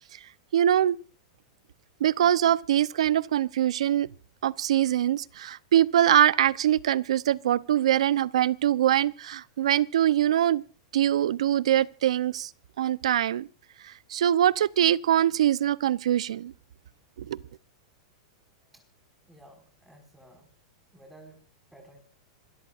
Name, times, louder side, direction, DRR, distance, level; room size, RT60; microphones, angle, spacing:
voice 1, 0.5-1.0 2.0-4.1 4.4-10.6 10.9-12.5 12.8-13.5 13.8-16.5 17.2-17.4, right 11 dB, 80° right, 0.8 m, -23 dB
voice 2, 19.3-20.5 20.9-21.4 21.7-22.0, right 1 dB, 5° right, 5.6 m, -53 dB
27.0 x 13.0 x 2.5 m
hypercardioid pair, 130°, 3 cm